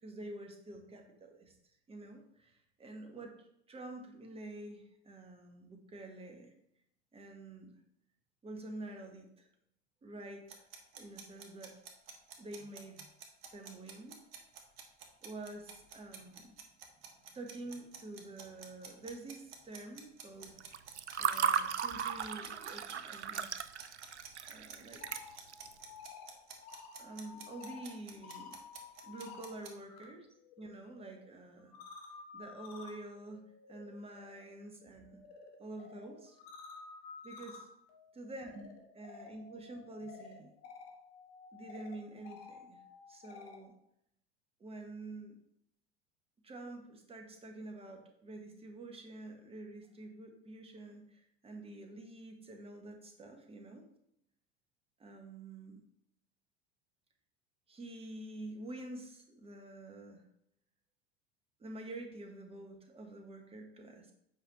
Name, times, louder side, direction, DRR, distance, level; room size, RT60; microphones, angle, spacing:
voice 1, 0.0-1.5 1.9-3.3 3.7-6.5 7.1-7.7 8.4-9.5 10.0-10.6 11.0-11.7 12.4-13.0 13.5-14.2 15.2-16.5 17.3-20.6 21.2-23.5 24.5-25.0 27.0-28.6 29.0-30.3 30.6-31.8 32.3-33.4 33.7-35.2 35.6-36.4 37.2-37.7 38.1-38.7 38.9-40.5 41.5-42.8 43.1-43.7 44.6-45.4 46.4-53.9 55.0-55.8 57.7-60.2 61.6-64.1, right 2 dB, 15° right, 4 dB, 1.2 m, -48 dB
sound 1, 10.5-29.7, right 6 dB, 60° right, 1.2 m, -50 dB
Water / Fill (with liquid), 20.6-25.7, right 7 dB, 85° right, 0.5 m, -36 dB
sound 2, 24.8-30.1 30.4-43.6, left 5 dB, 45° left, 1.5 m, -53 dB
8.0 x 5.2 x 3.1 m, 0.76 s
figure-of-eight pair, 80°, 34 cm